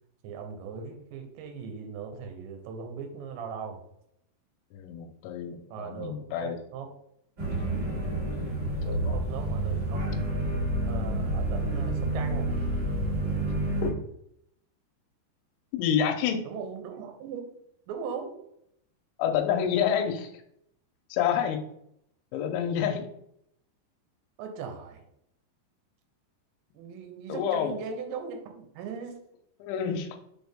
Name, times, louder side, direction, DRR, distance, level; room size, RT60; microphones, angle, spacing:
voice 1, 0.2-3.8 5.7-6.9 8.8-10.0 10.8-12.6 16.4-17.4 17.9-18.4 24.4-25.1 26.7-29.2, right 6 dB, 80° right, 5 dB, 3.0 m, -39 dB
voice 2, 4.7-6.6 8.8-9.2 13.8-13.9 15.8-16.4 19.2-20.3 21.1-21.6 22.3-23.1 27.3-27.8 29.6-30.2, left 8 dB, 85° left, 4 dB, 3.1 m, -28 dB
sound 1, 7.4-13.9, right 1 dB, 35° right, 1.6 m, -29 dB
6.6 x 4.3 x 3.5 m, 0.74 s
omnidirectional pair, 5.3 m